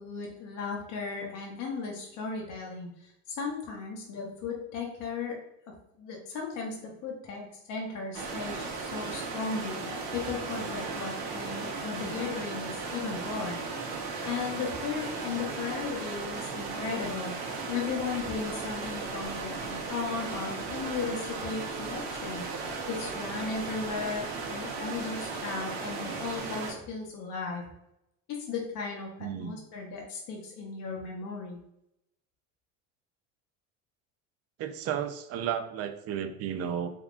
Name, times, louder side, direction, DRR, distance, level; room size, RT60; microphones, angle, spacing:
voice 1, 0.0-5.4 5.7-27.6 28.3-31.6, left 5 dB, 55° left, -1 dB, 0.7 m, -36 dB
sound 1, 8.1-26.7, right 4 dB, 75° right, 0.9 m, -36 dB
voice 2, 29.2-29.6 34.6-36.9, right 9 dB, 40° right, 8 dB, 0.4 m, -33 dB
3.5 x 2.3 x 2.4 m, 0.82 s
supercardioid pair, 95°, 38 cm